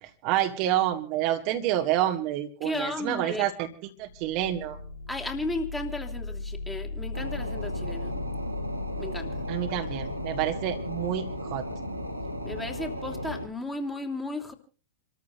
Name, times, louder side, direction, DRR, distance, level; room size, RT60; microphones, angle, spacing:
voice 1, 0.0-3.7 4.0-4.8 9.5-11.7, right 12 dB, 45° right, 5 dB, 1.8 m, -28 dB
voice 2, 2.6-3.5 5.1-8.2 9.0-9.3 12.4-14.5, left 2 dB, 10° left, 4 dB, 2.9 m, -34 dB
sound 1, 4.0-11.8, left 3 dB, 80° left, 1.5 m, -38 dB
sound 2, 7.1-13.5, equal, 90° right, 2.9 m, -35 dB
28.0 x 14.0 x 2.6 m, 0.39 s
figure-of-eight pair, 90°, 0 cm